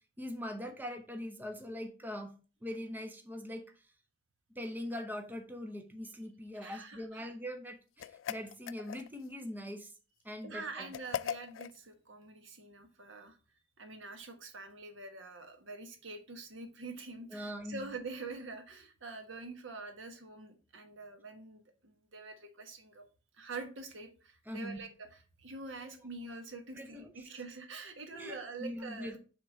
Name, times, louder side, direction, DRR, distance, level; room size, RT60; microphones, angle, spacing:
voice 1, 0.2-2.3 2.6-3.7 4.5-9.9 10.2-10.9 17.3-17.9 24.5-24.8 25.8-26.0 26.7-27.3 28.1-29.2, left 1 dB, 10° right, 5 dB, 0.8 m, -42 dB
voice 2, 6.5-7.2 10.4-13.4 13.8-23.0 23.3-29.2, right 3 dB, 85° right, 6 dB, 1.3 m, -46 dB
sound 1, 8.0-9.3 10.9-11.8, left 9 dB, 80° left, 0.3 m, -39 dB
6.0 x 3.7 x 5.2 m, 0.35 s
head